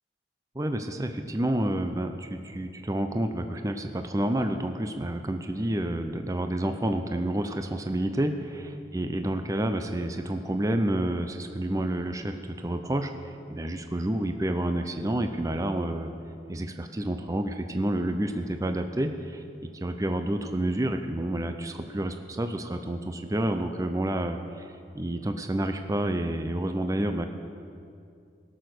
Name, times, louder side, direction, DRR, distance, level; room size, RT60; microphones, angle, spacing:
voice 1, 0.6-13.1 13.5-16.1 16.5-19.4 19.7-27.3, right 1 dB, 20° right, 7 dB, 0.5 m, -29 dB
17.0 x 6.3 x 6.6 m, 2.4 s
head